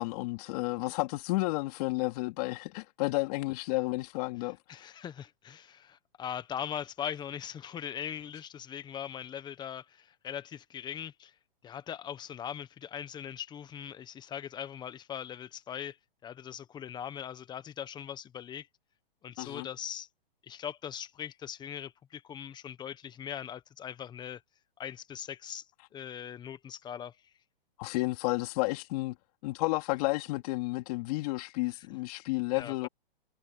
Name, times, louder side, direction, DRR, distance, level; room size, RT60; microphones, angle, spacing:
voice 1, 0.0-4.9 19.4-19.7 27.8-29.2 29.4-32.9, left 23 dB, 40° left, 3.2 m, -32 dB
voice 2, 4.7-11.3 11.6-16.0 16.2-18.7 19.2-20.1 20.4-24.4 24.8-25.6 25.9-27.2 31.7-31.8 32.5-32.9, left 9 dB, 15° left, 1.3 m, -40 dB
hypercardioid pair, 145°, 29 cm